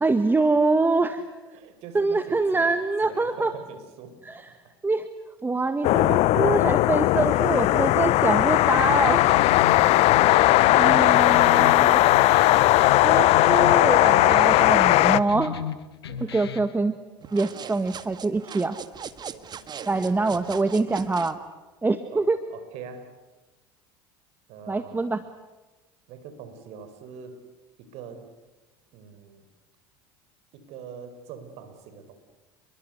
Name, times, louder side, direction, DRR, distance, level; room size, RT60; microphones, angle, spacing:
voice 1, 0.0-1.2 1.9-3.5 4.3-4.4 4.8-5.1 5.4-9.2 10.7-12.0 13.0-15.6 16.3-16.9 17.3-18.8 19.9-21.4 21.8-22.4 24.7-25.2, right 3 dB, 15° right, 9 dB, 1.7 m, -24 dB
voice 2, 1.4-4.7 5.8-6.0 9.9-11.8 16.1-16.5 17.2-17.8 19.2-20.5 22.1-23.2 24.5-25.1 26.1-27.5 27.8-28.3 28.9-29.5 30.5-32.2, right 6 dB, 60° right, 10 dB, 4.9 m, -44 dB
sound 1, 5.8-15.2, left 17 dB, 55° left, 0.9 m, -18 dB
sound 2, 8.8-16.8, left 9 dB, 90° left, 1.4 m, -35 dB
sound 3, 17.2-21.4, right 7 dB, 35° right, 1.8 m, -40 dB
30.0 x 22.5 x 8.2 m, 1.1 s
hypercardioid pair, 80°, 13 cm